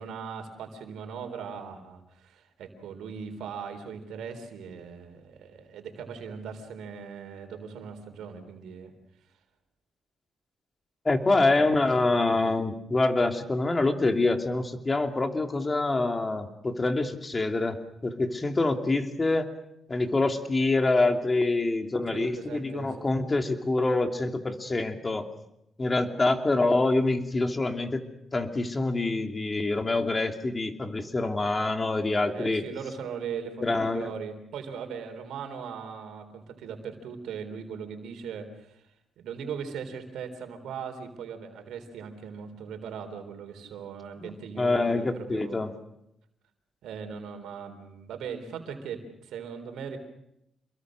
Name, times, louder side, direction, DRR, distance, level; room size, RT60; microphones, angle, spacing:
voice 1, 0.0-8.9 12.0-12.3 22.0-23.0 32.2-38.8 39.2-45.6 46.8-50.0, right 6 dB, 85° right, 6 dB, 3.8 m, -39 dB
voice 2, 11.0-19.5 19.9-25.3 25.8-28.0 28.3-32.6 33.6-34.1 44.2-44.3 44.6-45.8, left 2 dB, 25° left, 5 dB, 2.9 m, -26 dB
28.0 x 22.5 x 6.4 m, 0.81 s
cardioid pair, 80°, 0 cm